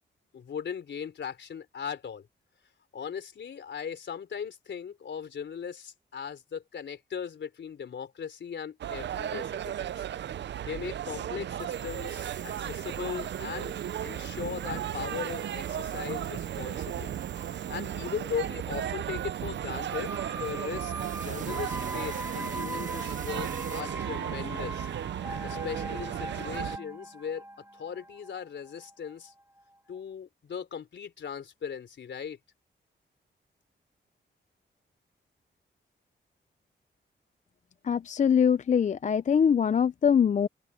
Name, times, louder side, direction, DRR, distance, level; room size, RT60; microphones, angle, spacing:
voice 1, 0.3-2.3 2.9-10.0 10.6-13.7 14.0-17.1 17.5-20.9 21.2-24.9 25.4-27.4 27.7-29.3 29.9-32.4, left 7 dB, 70° left, 3.8 m, -38 dB
sound 1, 8.8-26.8, right 10 dB, 70° right, 0.5 m, -35 dB
sound 2, 11.6-23.8, right 6 dB, 40° right, 1.2 m, -48 dB
sound 3, 19.9-29.6 29.9-30.0, right 1 dB, 15° right, 1.5 m, -40 dB
voice 2, 37.8-40.5, left 7 dB, 40° left, 0.4 m, -23 dB
open air
cardioid pair, 95°, 19 cm